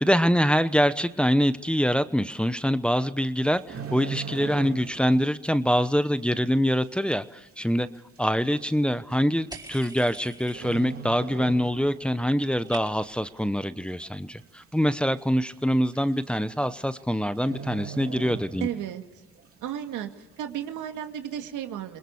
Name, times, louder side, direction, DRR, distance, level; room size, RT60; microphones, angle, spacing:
voice 1, 0.0-7.9 8.2-18.7, equal, 5° left, 11 dB, 1.0 m, -24 dB
sound 1, 3.4-5.2 5.4-5.7 6.3-6.4 7.3-7.4 7.6-7.7 8.5-8.8 9.9-10.3 10.5-12.1 12.4-12.7 13.2-13.7 14.0-14.1 14.4-14.5 14.9-15.0 15.9-16.0 16.3-16.6 16.9-17.0 17.4-19.0 19.4-19.5, right 6 dB, 50° right, 3.1 m, -39 dB
sound 2, 9.5-11.1 11.4-11.9 12.2-13.3, right 3 dB, 15° right, 4.6 m, -45 dB
voice 2, 18.6-19.0 19.6-20.1 20.4-22.0, right 10 dB, 90° right, 6 dB, 2.1 m, -33 dB
28.5 x 21.0 x 7.2 m, 1.1 s
cardioid pair, 90°, 30 cm